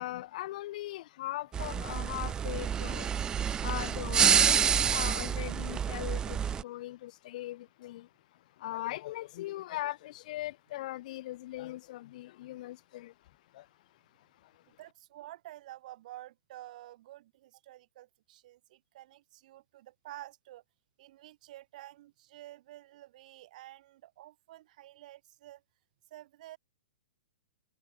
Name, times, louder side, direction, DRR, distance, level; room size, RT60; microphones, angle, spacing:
voice 1, 0.0-3.1 3.6-13.7 14.2-14.6, left 16 dB, 50° left, 2.7 m, -40 dB
sound 1, 1.5-6.6, right 8 dB, 15° right, 0.5 m, -28 dB
voice 2, 14.7-20.6 21.0-25.6 26.1-26.6, right 15 dB, 50° right, 1.6 m, -50 dB
hypercardioid pair, 145°, 5 cm